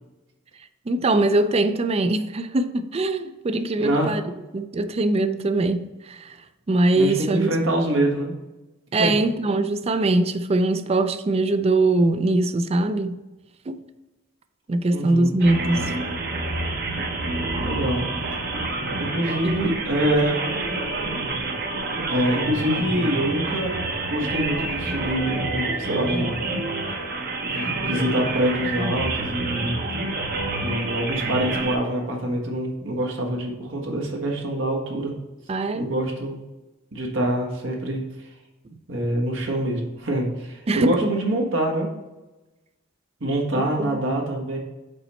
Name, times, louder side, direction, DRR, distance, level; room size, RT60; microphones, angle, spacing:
voice 1, 0.9-4.2 4.5-5.8 6.1-6.3 6.7-7.5 8.9-13.2 13.7-13.8 14.7-15.9 19.4-19.7 35.5-35.9 40.7-41.0, right 2 dB, 30° right, 0.4 m, -22 dB
voice 2, 3.8-4.1 6.9-8.3 9.0-9.1 14.9-15.3 17.6-18.1 18.9-20.3 22.1-23.7 24.1-26.4 26.9-27.0 27.4-29.8 30.6-35.1 35.7-36.4 36.9-38.3 38.9-41.9 43.2-44.6, right 1 dB, 70° right, 1.3 m, -25 dB
sound 1, 15.4-31.8, right 2 dB, 50° right, 1.0 m, -28 dB
5.4 x 4.2 x 5.2 m
head